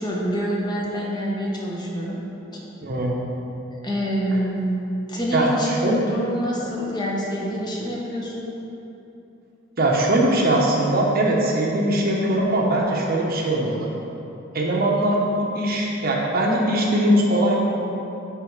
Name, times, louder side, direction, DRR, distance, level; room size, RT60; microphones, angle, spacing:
voice 1, 0.0-2.2 2.5-2.6 3.8-4.8 5.1-8.5, equal, 20° left, -4 dB, 1.2 m, -26 dB
voice 2, 2.8-3.1 5.3-6.0 9.8-13.9 14.5-17.7, right 1 dB, 50° right, -2 dB, 1.0 m, -21 dB
9.4 x 4.3 x 4.7 m, 2.9 s
head